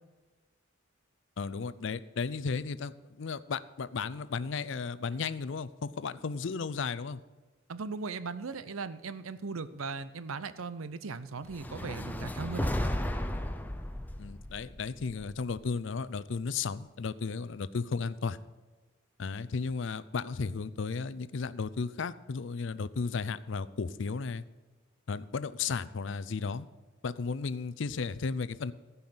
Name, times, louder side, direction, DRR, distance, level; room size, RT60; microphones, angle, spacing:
voice 1, 1.4-7.2 14.2-18.4 19.2-24.4 25.1-26.7 27.0-28.7, left 5 dB, 65° left, 15 dB, 0.5 m, -34 dB
voice 2, 7.7-12.7, right 4 dB, 90° right, 14 dB, 0.7 m, -38 dB
sound 1, 11.5-15.7, left 1 dB, 10° left, 0.6 m, -34 dB
14.5 x 5.6 x 7.7 m, 1.2 s
head